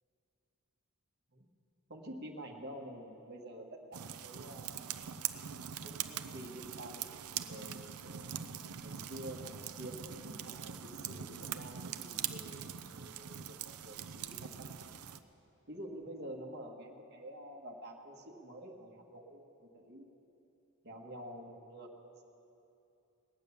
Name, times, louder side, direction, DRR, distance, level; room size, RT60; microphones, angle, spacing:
voice 1, 1.9-5.1 5.8-8.3 8.8-15.0 15.7-20.2 20.8-22.2, right 1 dB, 45° right, 0 dB, 1.5 m, -48 dB
sound 1, 3.9-15.2, right 9 dB, 75° right, 0.6 m, -42 dB
19.0 x 9.2 x 6.9 m, 2.8 s
head